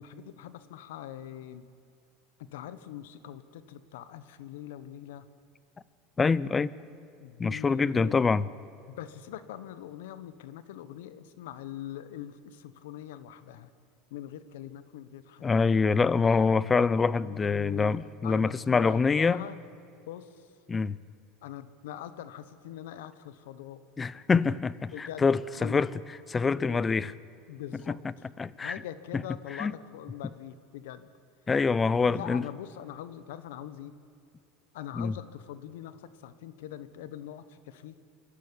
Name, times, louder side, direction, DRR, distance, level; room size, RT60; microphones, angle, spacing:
voice 1, 0.0-1.7 2.5-5.3 7.2-8.2 8.9-13.7 14.1-15.7 17.1-19.6 20.1-20.5 21.4-23.8 24.9-25.2 25.6-25.8 26.6-26.8 27.5-28.0 28.6-31.1 31.8-34.0 34.7-38.0, left 11 dB, 90° left, 1.2 m, -42 dB
voice 2, 6.2-6.7 7.4-8.4 15.4-19.4 20.7-21.0 24.0-25.9 26.3-27.1 28.4-28.8 29.1-29.2 29.6-29.7 31.5-32.5 34.9-35.1, left 4 dB, 20° left, 0.6 m, -25 dB
27.0 x 12.0 x 9.8 m
supercardioid pair, 130°, 0 cm